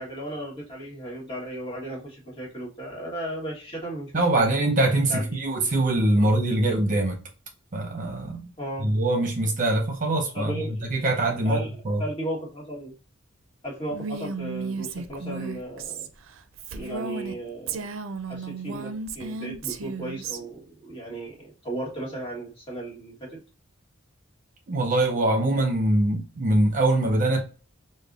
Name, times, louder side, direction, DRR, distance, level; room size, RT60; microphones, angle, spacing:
voice 1, 0.0-4.4 5.1-5.4 6.2-6.3 8.6-8.9 10.3-10.9 11.4-12.9 13.6-16.1 16.7-18.0 18.3-23.4, right 1 dB, 30° left, 1.4 m, -35 dB
voice 2, 4.1-7.2 7.7-8.5 8.8-12.0 24.7-27.4, right 1 dB, 40° right, 0.7 m, -23 dB
Female speech woman speaking, 13.9-17.4 17.7-20.4, right 4 dB, 70° right, 0.4 m, -34 dB
5.2 x 2.1 x 2.4 m
head